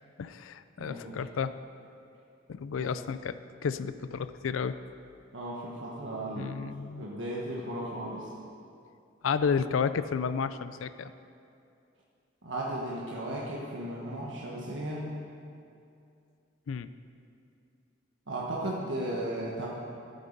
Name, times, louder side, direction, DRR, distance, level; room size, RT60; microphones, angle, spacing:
voice 1, 0.2-1.6 2.5-3.4 3.6-4.8 6.4-7.0 9.2-11.1 16.7-16.9, left 6 dB, 90° left, 13 dB, 0.4 m, -31 dB
voice 2, 0.8-1.2 2.7-2.9 5.3-6.5 7.0-8.3 12.4-15.1 18.3-19.7, right 1 dB, 75° right, -4 dB, 1.3 m, -35 dB
12.0 x 9.4 x 5.4 m, 2.5 s
head